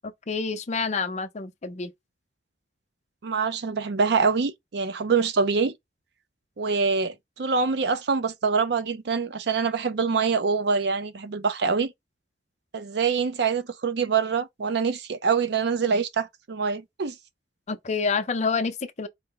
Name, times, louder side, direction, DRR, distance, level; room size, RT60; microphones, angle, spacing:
voice 1, 0.0-1.9 17.7-19.1, left 4 dB, 40° left, 0.5 m, -28 dB
voice 2, 3.2-5.7 6.6-11.9 12.7-17.2, right 5 dB, 65° right, 0.5 m, -25 dB
4.1 x 2.1 x 3.7 m
head